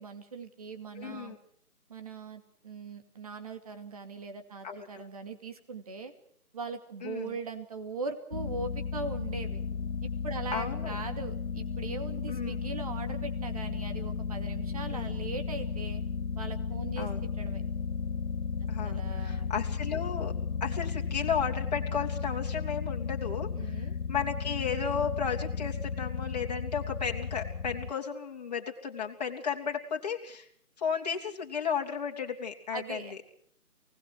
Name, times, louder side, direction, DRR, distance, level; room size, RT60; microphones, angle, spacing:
voice 1, 0.0-1.4 1.9-6.1 6.5-9.6 10.0-16.0 16.4-17.1 17.4-17.6 18.8-19.5 23.5-24.0 32.7-33.3, right 4 dB, 25° right, 7 dB, 2.5 m, -40 dB
voice 2, 1.0-1.4 4.6-5.1 7.0-7.3 10.5-11.0 12.3-12.6 14.9-15.1 17.0-17.3 18.7-20.3 20.6-30.5 30.8-33.3, left 7 dB, 25° left, 1 dB, 3.2 m, -34 dB
sound 1, 8.3-27.9, left 5 dB, 80° left, 1.1 m, -34 dB
29.0 x 19.5 x 6.3 m, 0.65 s
figure-of-eight pair, 165°, 45 cm